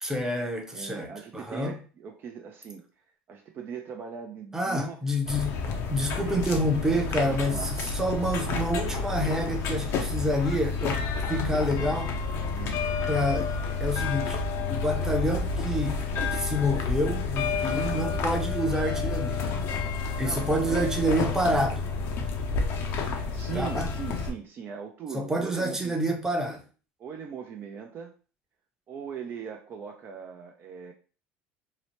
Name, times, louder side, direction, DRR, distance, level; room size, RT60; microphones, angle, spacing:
voice 1, 0.0-1.8 4.5-5.6 5.9-11.0 11.3-12.1 13.1-13.5 13.8-14.4 14.7-16.0 16.3-19.5 20.2-21.9 23.5-23.9 25.1-26.6, equal, 10° right, 0.7 m, -28 dB
voice 2, 0.7-2.8 3.3-5.0 6.2-6.5 7.2-7.7 12.5-12.8 20.2-21.0 23.3-26.0 27.0-28.1 28.9-30.9, right 7 dB, 45° right, 0.4 m, -39 dB
sound 1, 5.3-24.3, left 4 dB, 60° left, 0.6 m, -30 dB
2.8 x 2.1 x 3.0 m
supercardioid pair, 95°, 5 cm